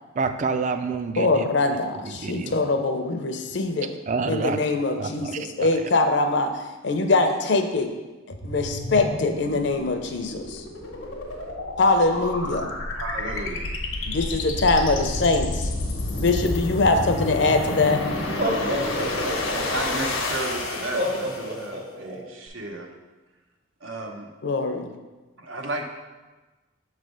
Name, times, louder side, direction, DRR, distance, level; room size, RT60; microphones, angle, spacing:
voice 1, 0.2-1.5 2.0-2.5 4.1-4.6 5.0-5.7, right 4 dB, 40° right, 9 dB, 0.3 m, -28 dB
voice 2, 1.2-3.9 4.3-7.9 8.4-10.6 11.8-12.7 14.1-15.7 16.2-18.0 24.4-24.9, left 3 dB, 60° left, 6 dB, 0.6 m, -23 dB
sound 1, 8.3-21.7, left 2 dB, 90° left, 0.9 m, -30 dB
voice 3, 12.9-13.7 19.1-22.9 23.8-24.3 25.4-25.9, right 2 dB, 85° right, 3 dB, 0.8 m, -34 dB
Laughter, 17.5-17.6 18.2-19.9 20.9-22.2, right 1 dB, 60° right, 1.3 m, -28 dB
6.8 x 3.2 x 5.1 m, 1.2 s
head